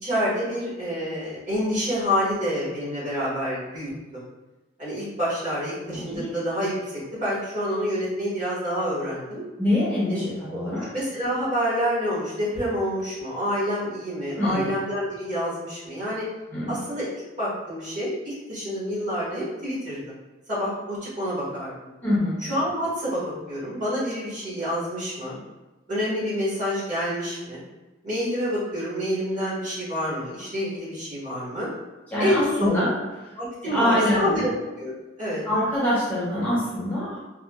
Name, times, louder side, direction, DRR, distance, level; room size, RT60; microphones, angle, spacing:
voice 1, 0.0-3.9 4.8-9.4 10.1-10.2 10.5-16.2 16.7-17.0 17.4-20.0 20.5-21.7 22.4-25.4 25.9-27.6 28.0-31.7 32.2-32.8 33.4-34.5 34.8-34.9 35.2-35.4, equal, 40° right, -10 dB, 1.5 m, -27 dB
voice 2, 5.9-6.3 9.6-10.8 14.4-14.7 16.5-16.7 22.0-22.4 32.1-32.9 33.6-34.5 35.5-37.2, left 1 dB, 10° left, -9 dB, 0.6 m, -24 dB
3.6 x 2.2 x 2.3 m, 1.1 s
head